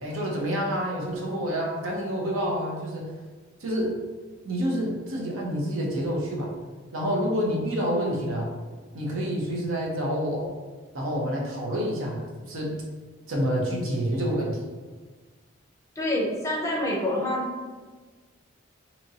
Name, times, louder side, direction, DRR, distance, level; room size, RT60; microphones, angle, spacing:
voice 1, 0.0-3.1 3.6-3.9 4.4-6.5 6.9-8.5 8.9-10.6 10.9-12.7 13.3-14.6, equal, 85° right, -2 dB, 0.8 m, -28 dB
voice 2, 16.0-17.4, left 1 dB, 15° left, -3 dB, 0.5 m, -26 dB
2.8 x 2.6 x 2.7 m, 1.4 s
head